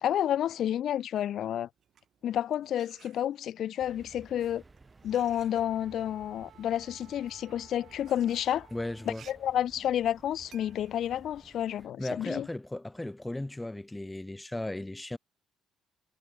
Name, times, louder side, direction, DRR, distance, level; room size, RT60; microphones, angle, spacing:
voice 1, 0.0-1.7 2.2-4.6 5.0-8.7 9.1-12.5, left 11 dB, 55° left, 0.6 m, -30 dB
sound 1, 1.7-3.7 4.4-12.3, right 8 dB, 45° right, 6.4 m, -60 dB
sound 2, 3.8-11.9, right 3 dB, 20° right, 4.3 m, -56 dB
Wind instrument woodwind instrument, 5.1-9.4, right 12 dB, 65° right, 6.4 m, -58 dB
voice 2, 8.7-9.3 12.0-15.2, left 1 dB, 10° left, 0.4 m, -36 dB
cardioid pair, 125°, 0 cm